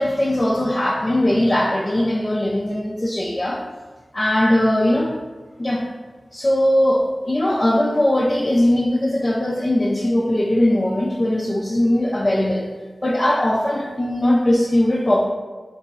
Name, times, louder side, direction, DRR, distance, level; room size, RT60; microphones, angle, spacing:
voice 1, 0.0-3.6 4.1-5.1 5.6-5.9 6.3-12.7 13.0-15.2, left 1 dB, 35° left, -3 dB, 0.4 m, -19 dB
3.8 x 3.0 x 2.4 m, 1.3 s
wide cardioid pair, 55°, 0 cm